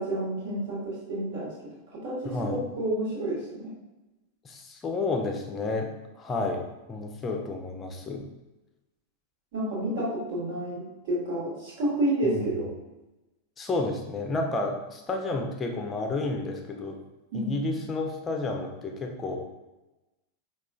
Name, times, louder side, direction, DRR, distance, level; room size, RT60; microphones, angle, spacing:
voice 1, 0.0-1.5 1.9-3.7 9.5-12.7 17.3-17.5, right 1 dB, 50° right, -5 dB, 1.3 m, -30 dB
voice 2, 2.2-2.6 4.4-5.9 6.2-8.2 12.2-12.5 13.6-16.9 17.3-19.4, left 3 dB, 20° left, 2 dB, 0.5 m, -31 dB
4.8 x 2.3 x 2.3 m, 1.0 s
figure-of-eight pair, 90°, 0 cm